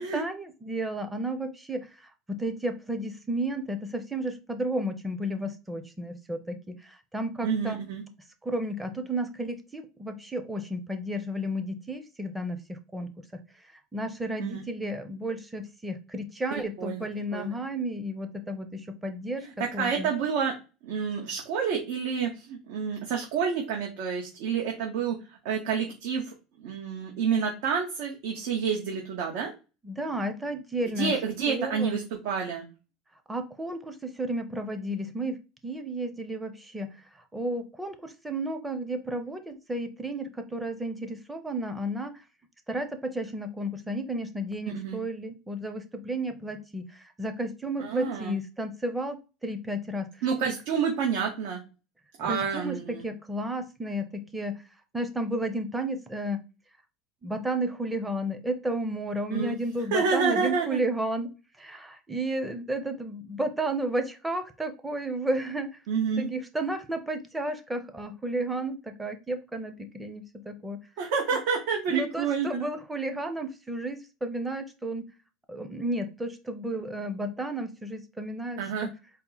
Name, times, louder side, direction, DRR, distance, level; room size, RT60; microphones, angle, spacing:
voice 1, 0.0-7.8 8.4-13.4 13.9-19.5 19.7-20.1 29.8-31.1 31.5-32.0 33.3-36.9 37.1-42.2 42.7-49.2 49.4-50.1 50.4-50.5 52.2-54.6 54.9-56.4 57.2-65.8 66.2-70.8 71.9-75.1 75.5-78.9, right 1 dB, 10° right, 7 dB, 0.6 m, -32 dB
voice 2, 7.4-8.0 14.4-14.6 16.8-17.6 19.4-20.5 20.8-26.3 26.6-29.5 31.0-32.6 44.7-45.0 47.8-48.4 50.2-51.6 52.2-53.0 59.3-59.5 59.9-60.8 65.9-66.3 71.0-72.7 78.6-78.9, right 6 dB, 70° right, 0 dB, 1.0 m, -29 dB
4.2 x 2.1 x 3.9 m, 0.30 s
supercardioid pair, 135°, 0 cm